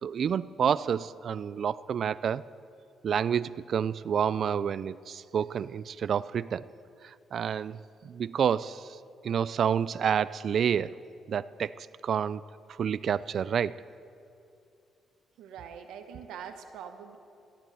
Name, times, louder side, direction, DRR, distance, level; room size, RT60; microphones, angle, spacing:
voice 1, 0.0-2.4 3.0-6.7 7.0-9.0 9.2-11.0 11.3-12.4 12.7-13.7, right 8 dB, 55° right, 18 dB, 0.3 m, -29 dB
voice 2, 15.4-17.2, right 7 dB, 85° right, 6 dB, 1.1 m, -43 dB
13.5 x 7.1 x 9.3 m, 2.6 s
cardioid pair, 90°, 0 cm